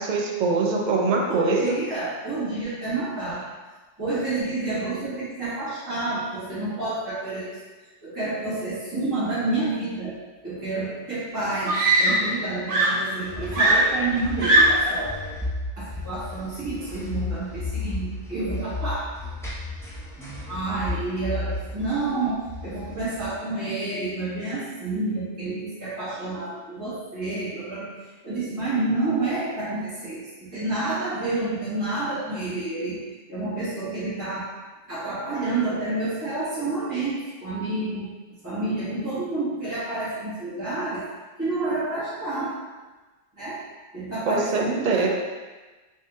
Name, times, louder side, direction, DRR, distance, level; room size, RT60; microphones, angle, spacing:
voice 1, 0.0-1.6 44.3-45.1, right 4 dB, 55° right, 1 dB, 0.5 m, -23 dB
voice 2, 1.3-3.4 4.0-7.6 8.0-10.1 10.4-15.2 15.8-19.1 20.5-27.9 28.2-33.0 33.3-34.5 34.9-38.1 38.4-41.0 41.4-42.5 43.3-43.6 43.9-45.1, right 2 dB, 15° right, -14 dB, 1.2 m, -29 dB
Screaming, 10.8-10.9 11.7-12.4 12.7-15.0 16.0-16.2, right 1 dB, 90° right, 1.1 m, -20 dB
sound 1, 13.3-23.3, left 3 dB, 5° left, 0.5 m, -34 dB
3.8 x 2.7 x 3.4 m, 1.2 s
omnidirectional pair, 1.2 m